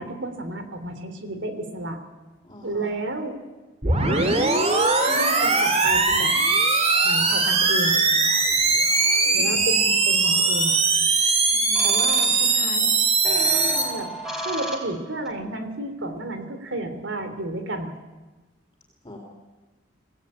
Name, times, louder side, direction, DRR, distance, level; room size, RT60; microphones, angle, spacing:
voice 1, 0.0-2.0 2.6-3.4 4.1-4.3 5.1-6.3 7.0-8.0 9.3-10.8 11.8-12.9 13.2-14.1 14.4-17.9, right 1 dB, 75° right, 8 dB, 3.2 m, -31 dB
voice 2, 2.4-2.9 3.8-4.2 9.3-9.6 11.5-11.9 19.0-19.2, left 1 dB, 25° left, -1 dB, 3.6 m, -43 dB
sound 1, 3.8-13.8, right 3 dB, 35° right, 2.9 m, -20 dB
sound 2, 10.2-10.8 11.7-12.8 13.2-15.3, left 1 dB, ahead, 4.0 m, -35 dB
24.5 x 17.0 x 8.6 m, 1.2 s
head